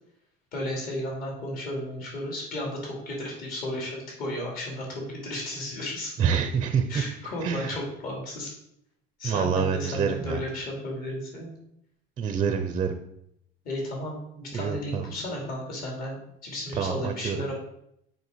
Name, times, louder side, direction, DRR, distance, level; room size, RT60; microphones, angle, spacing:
voice 1, 0.5-6.1 6.9-8.5 9.2-11.5 13.6-17.5, left 1 dB, 45° left, -1 dB, 2.8 m, -34 dB
voice 2, 6.2-6.9 7.4-7.7 9.2-10.4 12.2-13.0 14.5-15.0 16.8-17.4, right 7 dB, 25° right, 7 dB, 0.5 m, -26 dB
6.7 x 5.3 x 4.5 m, 0.75 s
cardioid pair, 175°, 19 cm